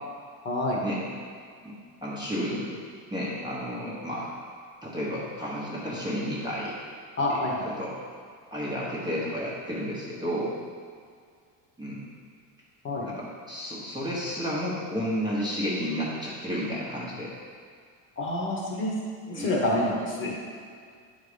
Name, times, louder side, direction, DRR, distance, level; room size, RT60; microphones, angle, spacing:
voice 1, 0.4-0.8 7.2-7.6 12.8-13.1 18.2-18.9 19.3-20.3, left 1 dB, 25° left, -3 dB, 1.1 m, -27 dB
voice 2, 2.0-2.7 3.1-4.3 4.8-6.7 7.3-7.9 8.5-10.6 11.8-12.0 13.0-17.3 19.3-19.5, equal, 10° right, -7 dB, 1.0 m, -32 dB
9.4 x 4.1 x 5.0 m, 2.1 s
cardioid pair, 175°, 44 cm